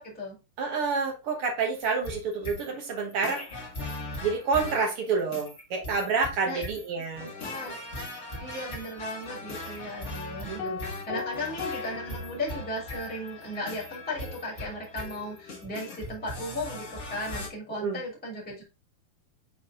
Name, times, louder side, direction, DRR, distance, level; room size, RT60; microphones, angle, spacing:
voice 1, 0.6-3.4 4.2-7.8 10.5-10.8 11.1-11.2 17.8-18.0, right 4 dB, 65° right, 1.4 m, -29 dB
sound 1, 1.8-17.5, left 1 dB, 45° left, 0.9 m, -39 dB
voice 2, 7.2-7.7 8.4-18.6, left 1 dB, 5° left, 2.5 m, -36 dB
sound 2, 10.6-13.1, left 6 dB, 80° left, 2.4 m, -38 dB
6.8 x 4.2 x 3.7 m
omnidirectional pair, 4.1 m